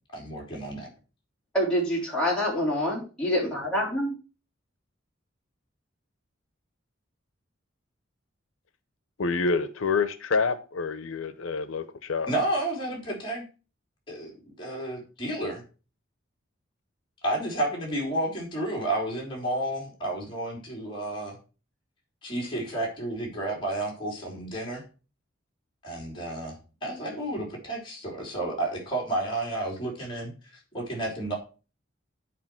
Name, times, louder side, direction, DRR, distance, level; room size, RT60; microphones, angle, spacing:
voice 1, 0.1-0.9 12.3-13.4 14.1-15.6 17.2-21.4 22.2-24.8 25.8-31.4, right 1 dB, 25° left, -1 dB, 3.4 m, -31 dB
voice 2, 1.5-4.1, equal, 5° left, -5 dB, 3.6 m, -26 dB
voice 3, 9.2-12.3, left 4 dB, 90° left, 13 dB, 0.7 m, -27 dB
8.5 x 4.8 x 5.9 m, 0.35 s
head